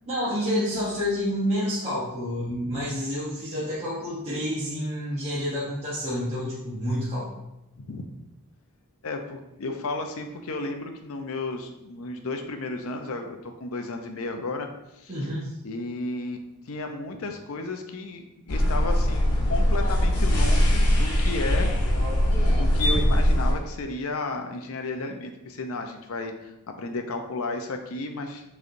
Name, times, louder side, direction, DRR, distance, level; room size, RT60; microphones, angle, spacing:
voice 1, 0.1-7.3 15.1-15.5, equal, 30° right, -9 dB, 1.0 m, -29 dB
voice 2, 9.0-14.7 15.0-15.2 15.6-21.7 22.4-26.5 26.8-28.4, left 2 dB, 65° left, 5 dB, 0.6 m, -33 dB
sound 1, 18.5-23.5, equal, 90° left, 1.2 m, -21 dB
6.4 x 3.2 x 2.6 m, 0.90 s
head